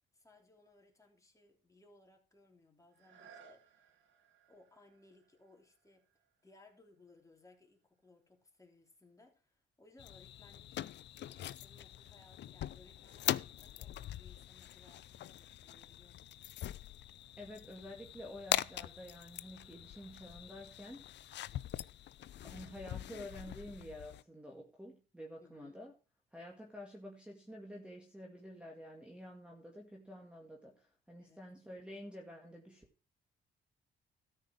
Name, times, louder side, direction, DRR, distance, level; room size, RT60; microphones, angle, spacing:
voice 1, 0.1-3.9 4.5-6.0 6.4-10.9 11.3-16.4 25.4-25.9 31.2-31.4, left 2 dB, 15° left, 3.3 m, -64 dB
sound 1, 2.9-8.5 9.1-9.2, right 7 dB, 70° right, 2.0 m, -64 dB
sound 2, 10.0-24.2, left 12 dB, 65° left, 0.5 m, -42 dB
voice 2, 17.4-21.2 22.4-25.9 26.3-32.8, equal, 5° right, 2.0 m, -50 dB
13.0 x 5.5 x 6.2 m
cardioid pair, 90°, 20 cm